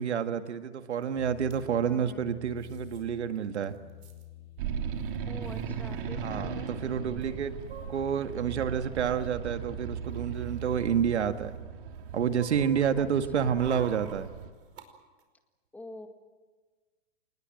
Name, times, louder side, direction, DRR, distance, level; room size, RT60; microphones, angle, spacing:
voice 1, 0.0-3.8 6.2-7.6 7.9-11.6 12.1-14.3, right 8 dB, 85° right, 9 dB, 1.9 m, -29 dB
sound 1, 1.0-1.1 1.3-1.6 2.6-3.0 3.4-3.5 3.6-4.2 5.1-5.2 5.4-5.6 7.2-8.3 8.9-9.3 9.9-11.6 11.9-14.9 15.2-15.3, right 6 dB, 70° right, 5.2 m, -48 dB
sound 2, 1.2-6.9, left 12 dB, 80° left, 3.2 m, -49 dB
voice 2, 1.8-2.3 5.3-6.8 13.0-13.1 13.3-13.8 15.7-16.1, left 2 dB, 5° left, 5 dB, 1.9 m, -46 dB
sound 3, 4.6-14.5, right 7 dB, 50° right, 3.2 m, -38 dB
28.0 x 20.0 x 7.8 m, 1.3 s
hypercardioid pair, 145°, 33 cm